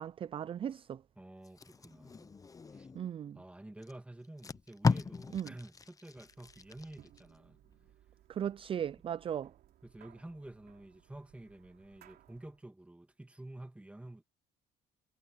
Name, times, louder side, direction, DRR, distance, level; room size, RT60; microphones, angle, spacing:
voice 1, 0.0-1.0 2.9-3.4 5.3-5.5 8.3-9.5, right 9 dB, 35° right, 0.4 m, -37 dB
voice 2, 1.2-2.4 2.7-2.9 3.3-7.6 9.0-9.1 9.8-14.2, right 1 dB, 5° right, 1.9 m, -50 dB
Packing tape duct tape, 1.4-3.1 3.8-3.9 4.2-7.2 7.6-7.9, left 4 dB, 20° left, 0.6 m, -36 dB
sound 1, 6.1-12.6, right 12 dB, 70° right, 3.5 m, -63 dB
cardioid pair, 110°, 17 cm